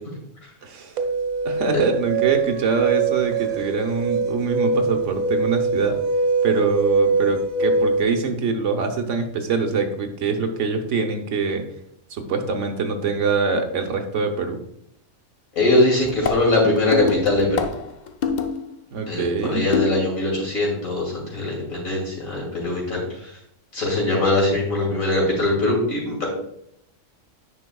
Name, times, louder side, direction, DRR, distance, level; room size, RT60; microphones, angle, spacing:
voice 1, 0.6-1.0 1.4-6.0 6.4-11.6 12.1-14.6 18.9-19.6, right 5 dB, 65° right, 5 dB, 1.1 m, -24 dB
sound 1, 1.0-8.1, right 4 dB, 80° right, 1.2 m, -23 dB
voice 2, 15.5-17.7 19.1-23.3 23.7-26.3, left 2 dB, 80° left, -3 dB, 3.0 m, -21 dB
sound 2, 16.0-18.7 19.7-20.2, left 6 dB, 60° left, 0.4 m, -26 dB
10.0 x 5.4 x 2.3 m, 0.75 s
omnidirectional pair, 1.4 m